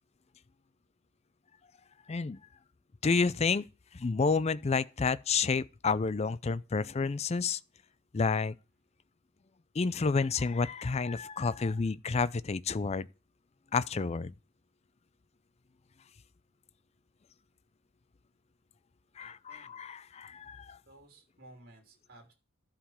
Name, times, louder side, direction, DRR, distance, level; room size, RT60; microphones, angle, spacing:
voice 1, 2.1-2.4 3.0-3.6 3.9-7.6 8.1-8.5 9.8-13.1 13.7-14.3 19.2-20.8, left 4 dB, 30° left, 0.4 m, -30 dB
voice 2, 19.2-19.8 20.9-22.3, right 2 dB, 50° right, 3.1 m, -56 dB
11.5 x 5.0 x 7.4 m
head